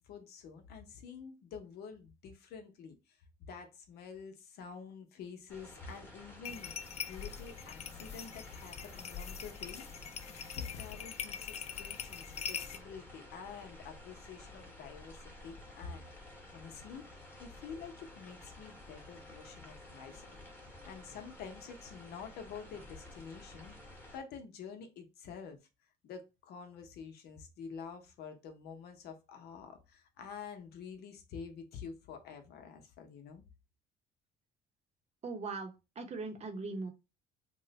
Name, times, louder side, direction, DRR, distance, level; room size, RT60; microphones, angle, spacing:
voice 1, 0.0-3.2 3.5-9.8 10.6-16.1 16.5-25.6 26.0-33.4, left 6 dB, 70° left, 0.8 m, -48 dB
sound 1, 5.5-24.2, left 1 dB, 10° left, 1.1 m, -53 dB
sound 2, 6.4-12.8, left 7 dB, 40° left, 0.4 m, -43 dB
voice 2, 35.2-35.7 36.0-36.9, right 3 dB, 40° right, 0.8 m, -39 dB
3.1 x 2.1 x 3.9 m
cardioid pair, 110°, 17 cm